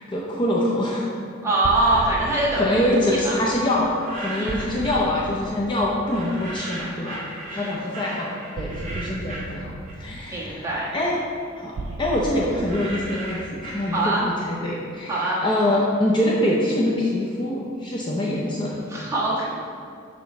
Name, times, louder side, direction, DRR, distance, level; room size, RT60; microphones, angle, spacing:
voice 1, 0.1-1.1 2.2-7.2 7.5-9.7 10.0-10.7 10.9-11.2 11.6-14.2 14.5-18.8, left 1 dB, 25° left, -4 dB, 0.6 m, -24 dB
voice 2, 1.4-3.4 4.4-4.6 7.5-7.8 10.3-11.0 13.9-14.3 15.1-15.4 18.9-19.5, right 2 dB, 15° right, -7 dB, 1.4 m, -24 dB
sound 1, 1.6-7.4 8.5-14.8, right 2 dB, 70° right, 0.4 m, -37 dB
sound 2, 3.8-5.1 6.1-10.3 10.7-14.4, right 1 dB, 35° right, 1.2 m, -37 dB
7.0 x 3.1 x 5.7 m, 2.3 s
head